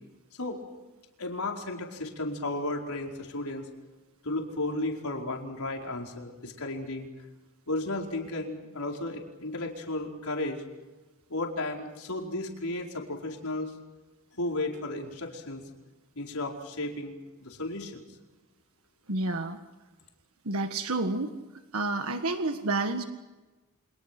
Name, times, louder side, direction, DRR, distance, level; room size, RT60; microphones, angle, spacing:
voice 1, 1.2-3.7 4.2-7.1 7.7-10.6 11.3-13.7 14.4-15.6 16.1-18.0, left 2 dB, 75° left, 1 dB, 4.9 m, -34 dB
voice 2, 19.1-19.6 20.4-21.3 21.7-23.0, right 2 dB, 70° right, 7 dB, 1.6 m, -29 dB
29.0 x 27.0 x 6.1 m, 1.2 s
head